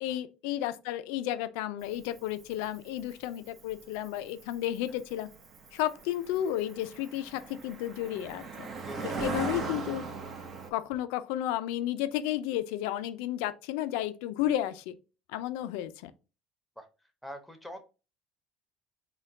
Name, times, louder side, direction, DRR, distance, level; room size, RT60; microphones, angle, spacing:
voice 1, 0.0-5.3 5.7-8.7 9.2-10.0 10.7-14.9 15.3-16.1, left 12 dB, 85° left, 0.4 m, -32 dB
Cricket, 1.8-10.7, right 4 dB, 40° right, 0.8 m, -39 dB
voice 2, 8.8-9.5 15.6-15.7 16.8-17.8, equal, ahead, 0.9 m, -45 dB
4.2 x 2.3 x 3.8 m
supercardioid pair, 105°, 0 cm